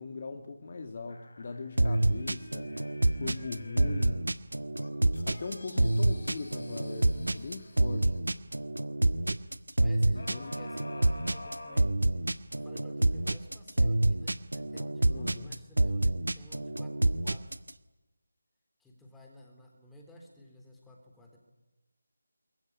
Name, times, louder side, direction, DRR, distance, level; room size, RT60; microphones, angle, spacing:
voice 1, 0.0-2.7 3.1-4.4 5.3-8.1 10.1-10.5 15.1-15.5, left 4 dB, 40° left, 7 dB, 2.0 m, -40 dB
sound 1, 1.1-4.2 4.8-8.4 10.1-12.5 13.0-13.1, left 2 dB, 60° left, 3.5 m, -49 dB
sound 2, 1.8-17.7, right 1 dB, 75° right, 1.5 m, -27 dB
voice 2, 9.8-11.9 12.6-17.4 18.8-21.4, equal, 5° left, 1 dB, 3.7 m, -54 dB
26.5 x 22.0 x 9.9 m, 1.0 s
figure-of-eight pair, 160°, 0 cm